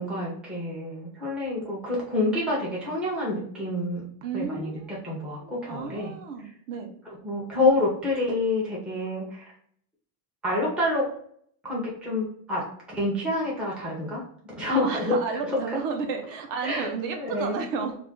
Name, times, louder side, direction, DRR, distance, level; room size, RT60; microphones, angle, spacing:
voice 1, 0.0-4.0 4.3-6.1 6.4-6.5 7.2-9.4 10.4-11.0 11.6-14.2 14.6-15.8 16.6-17.6, left 2 dB, 5° right, -5 dB, 0.4 m, -28 dB
voice 2, 4.2-5.0 5.4-6.9 14.7-18.0, right 5 dB, 55° right, 4 dB, 0.6 m, -32 dB
2.3 x 2.2 x 3.6 m, 0.63 s
cardioid pair, 165°, 39 cm